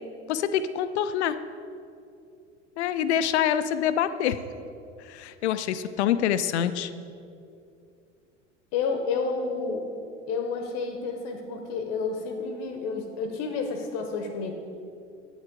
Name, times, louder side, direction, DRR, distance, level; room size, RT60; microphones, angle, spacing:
voice 1, 0.3-1.4 2.8-4.4 5.1-6.9, left 9 dB, 65° left, 12 dB, 0.5 m, -26 dB
voice 2, 8.7-9.9 10.3-14.5, left 4 dB, 45° left, 5 dB, 0.9 m, -30 dB
8.2 x 8.0 x 3.7 m, 2.5 s
figure-of-eight pair, 80°, 36 cm